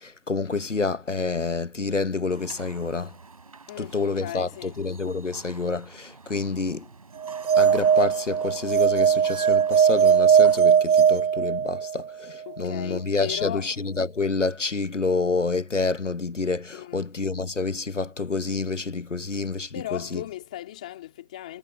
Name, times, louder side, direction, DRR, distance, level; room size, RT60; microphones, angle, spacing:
voice 1, 0.0-3.1 3.8-6.8 7.6-20.2, left 3 dB, 60° left, 1.2 m, -28 dB
sound 1, 2.3-10.6, right 4 dB, 25° right, 5.4 m, -48 dB
voice 2, 3.7-4.8 12.4-13.7 16.7-17.1 19.7-21.6, left 14 dB, 5° left, 3.1 m, -36 dB
sound 2, 7.2-12.1, right 7 dB, 75° right, 0.8 m, -19 dB
figure-of-eight pair, 175°, 42 cm